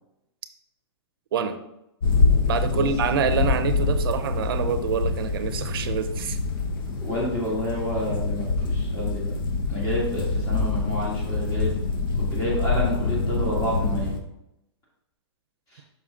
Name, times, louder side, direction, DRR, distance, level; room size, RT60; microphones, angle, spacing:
sound 1, 2.0-14.2, left 3 dB, 45° left, 1.0 m, -25 dB
voice 1, 2.5-6.4, right 6 dB, 55° right, 9 dB, 0.8 m, -26 dB
voice 2, 7.0-9.3 9.7-11.8 12.3-14.1 15.7-15.8, left 1 dB, 20° left, -4 dB, 1.8 m, -29 dB
5.8 x 5.7 x 3.7 m, 0.88 s
hypercardioid pair, 160°, 15 cm